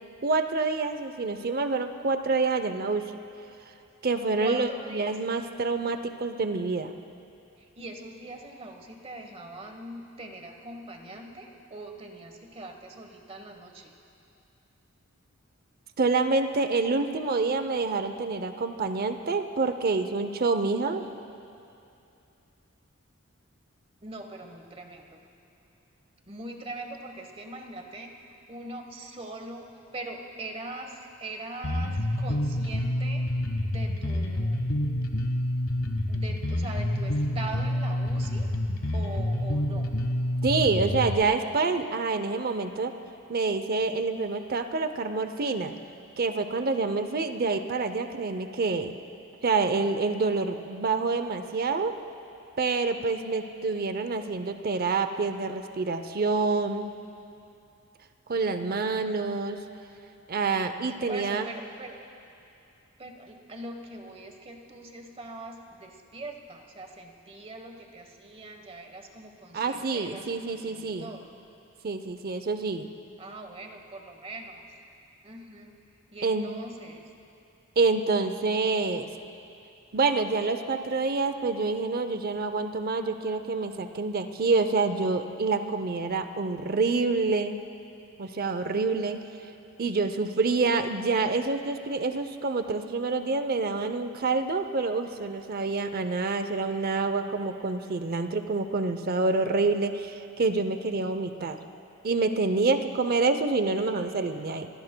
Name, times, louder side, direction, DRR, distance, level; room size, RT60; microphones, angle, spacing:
voice 1, 0.2-3.1 4.0-7.0 16.0-21.0 40.4-42.9 43.3-45.7 46.2-49.0 49.4-52.0 52.6-56.9 58.3-59.6 60.3-61.5 69.5-71.1 71.8-72.9 76.2-76.5 77.8-79.1 79.9-87.6 88.2-89.2 89.8-101.6 102.0-104.7, right 3 dB, 45° right, 9 dB, 0.6 m, -27 dB
voice 2, 4.3-5.1 7.8-13.9 24.0-25.2 26.3-28.1 28.5-29.7 29.9-33.2 33.7-34.7 36.1-38.5 38.9-39.9 61.1-62.0 63.0-71.3 73.2-74.6 75.2-75.8 76.1-77.0, right 2 dB, 25° right, 4 dB, 1.1 m, -41 dB
Bass guitar, 31.6-41.2, left 1 dB, 75° left, 1.2 m, -28 dB
28.5 x 17.5 x 2.2 m, 2.7 s
head